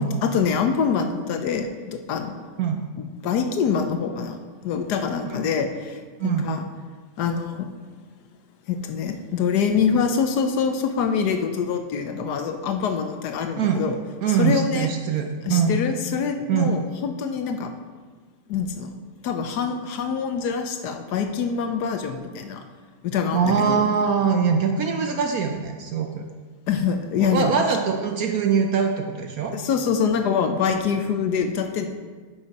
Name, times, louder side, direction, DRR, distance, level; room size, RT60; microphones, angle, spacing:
voice 1, 0.0-2.4 3.0-6.6 7.2-7.7 8.7-14.0 14.3-14.9 15.4-17.7 18.5-18.9 19.2-22.6 23.0-23.8 26.7-27.5 29.5-31.9, left 6 dB, 70° left, 6 dB, 1.1 m, -25 dB
voice 2, 6.2-6.5 13.6-13.8 14.2-15.8 16.5-16.7 23.3-26.2 27.2-29.5, right 6 dB, 65° right, 4 dB, 0.9 m, -23 dB
9.7 x 7.0 x 4.1 m, 1.5 s
omnidirectional pair, 2.0 m